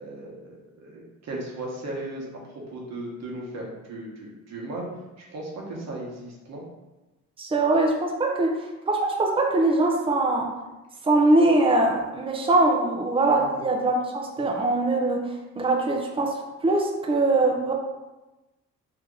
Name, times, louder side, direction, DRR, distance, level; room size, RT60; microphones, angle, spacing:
voice 1, 0.0-2.3 2.7-4.9 5.2-6.6 13.4-13.6 14.4-14.5, right 1 dB, 60° right, -3 dB, 1.1 m, -36 dB
voice 2, 7.4-10.5 11.0-17.7, right 2 dB, 20° right, 0 dB, 0.6 m, -22 dB
2.9 x 2.8 x 3.6 m, 1.1 s
cardioid pair, 90°, 30 cm